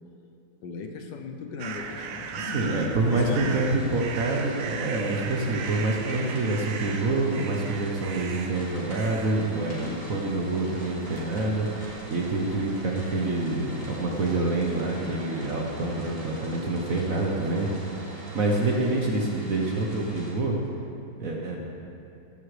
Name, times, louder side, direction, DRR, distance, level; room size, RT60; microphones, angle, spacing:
voice 1, 0.6-3.6 16.6-16.9, left 4 dB, 70° left, 4 dB, 1.3 m, -38 dB
sound 1, 1.6-18.7, right 5 dB, 70° right, 0.7 m, -39 dB
voice 2, 2.3-20.6 21.2-21.6, right 2 dB, 50° right, 0 dB, 1.2 m, -27 dB
sound 2, 3.1-20.3, equal, 40° left, 3.7 m, -46 dB
15.5 x 11.0 x 3.3 m, 2.7 s
omnidirectional pair, 2.2 m